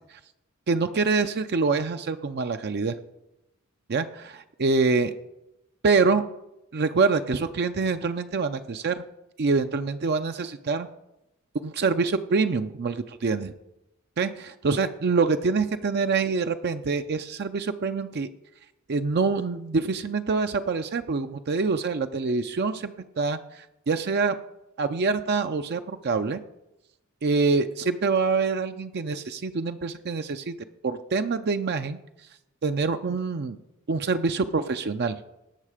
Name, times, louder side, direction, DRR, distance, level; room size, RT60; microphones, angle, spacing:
voice 1, 0.7-3.0 3.9-5.1 5.8-6.2 6.7-9.0 9.4-10.9 11.6-13.5 14.2-18.3 18.9-24.4 24.8-26.4 27.2-30.5 30.8-32.0 32.6-33.6 33.9-35.2, right 4 dB, 50° right, 8 dB, 0.5 m, -25 dB
18.0 x 6.6 x 5.0 m, 0.90 s
head